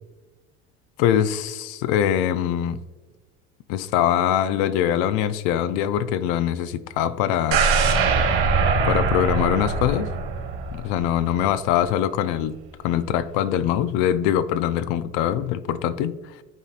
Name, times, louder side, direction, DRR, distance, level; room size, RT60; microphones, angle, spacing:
voice 1, 1.0-2.8 3.7-7.6 8.8-10.1 10.7-12.6 12.8-16.1, left 10 dB, 65° left, 0.5 m, -23 dB
sound 1, 7.5-11.5 11.8-11.9, right 4 dB, 75° right, 1.6 m, -22 dB
12.5 x 4.2 x 2.4 m
supercardioid pair, 105°, 32 cm